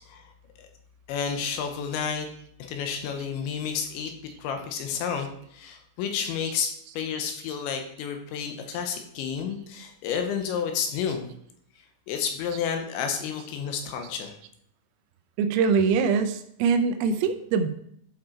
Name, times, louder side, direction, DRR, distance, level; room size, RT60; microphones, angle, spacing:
voice 1, 1.1-2.3 2.6-4.1 4.4-11.3 12.1-14.4, left 7 dB, 75° left, 5 dB, 3.1 m, -31 dB
voice 2, 15.4-17.7, right 5 dB, 85° right, 8 dB, 3.5 m, -23 dB
11.5 x 5.1 x 4.5 m, 0.67 s
omnidirectional pair, 5.8 m